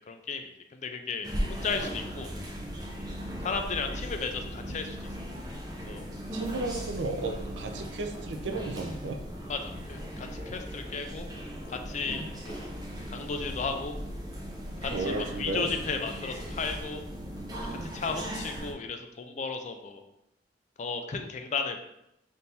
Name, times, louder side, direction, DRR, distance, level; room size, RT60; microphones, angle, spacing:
voice 1, 0.1-2.3 3.4-5.0 5.9-6.1 9.5-11.3 11.7-12.7 13.1-14.0 14.8-17.0 17.7-20.0 20.8-21.8, left 4 dB, 40° left, 5 dB, 0.4 m, -34 dB
sound 1, 1.2-18.7, equal, 20° right, 0.6 m, -38 dB
voice 2, 6.3-9.2 12.1-12.3 14.9-15.7 17.7-17.9, right 2 dB, 75° right, 4 dB, 0.5 m, -34 dB
3.6 x 2.6 x 4.2 m, 0.84 s
head